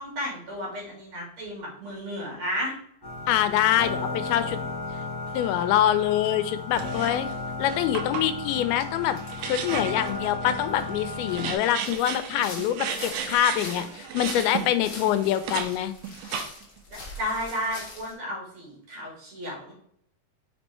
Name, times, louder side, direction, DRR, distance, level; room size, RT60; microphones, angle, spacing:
voice 1, 0.0-2.7 16.9-19.7, equal, 50° right, -2 dB, 2.8 m, -33 dB
sound 1, 3.0-11.5, left 3 dB, 10° left, 1.1 m, -34 dB
voice 2, 3.3-4.6 5.3-7.3 7.6-9.2 9.4-15.9, left 11 dB, 85° left, 12 dB, 2.4 m, -25 dB
sound 2, 6.7-7.3 7.7-15.7 16.0-16.8, right 7 dB, 80° right, 1.8 m, -35 dB
sound 3, 8.8-8.9 9.2-9.4 9.7-11.5 11.8-18.1, left 2 dB, 65° left, 1.0 m, -43 dB
5.7 x 4.4 x 4.3 m, 0.69 s
omnidirectional pair, 4.4 m